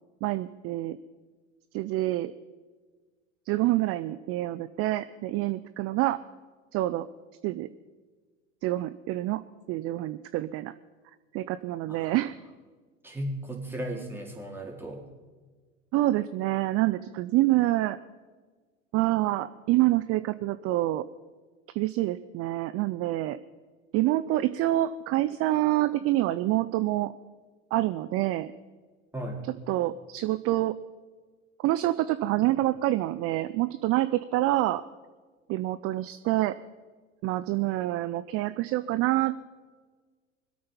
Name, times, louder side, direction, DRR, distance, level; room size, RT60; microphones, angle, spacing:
voice 1, 0.2-1.0 1.7-2.3 3.5-6.2 6.7-7.1 7.4-7.7 8.6-9.4 9.7-10.7 11.3-12.4 15.9-18.0 18.9-21.0 21.7-23.4 23.9-27.1 27.7-28.5 29.7-30.8 31.6-34.9 35.5-36.6 37.2-39.4, right 16 dB, 35° right, 14 dB, 0.5 m, -27 dB
voice 2, 11.9-12.2 13.0-15.1 29.1-29.5, right 1 dB, 5° right, 0 dB, 3.8 m, -36 dB
24.5 x 8.6 x 5.5 m, 1.4 s
hypercardioid pair, 85°, 40 cm